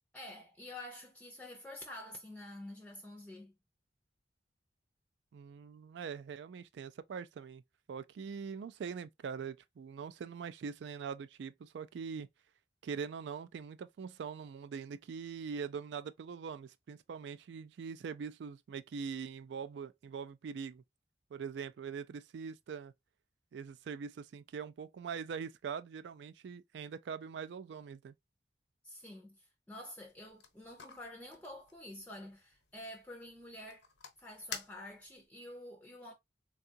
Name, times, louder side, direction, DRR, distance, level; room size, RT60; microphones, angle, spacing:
voice 1, 0.1-3.5 28.8-33.9 34.2-36.1, left 1 dB, 10° left, 0.5 m, -48 dB
voice 2, 5.3-7.6 7.9-12.3 12.8-20.8 21.3-22.9 23.5-28.1, right 6 dB, 75° right, 0.3 m, -43 dB
sound 1, 30.0-35.3, left 5 dB, 85° left, 0.9 m, -51 dB
3.6 x 2.3 x 2.6 m
head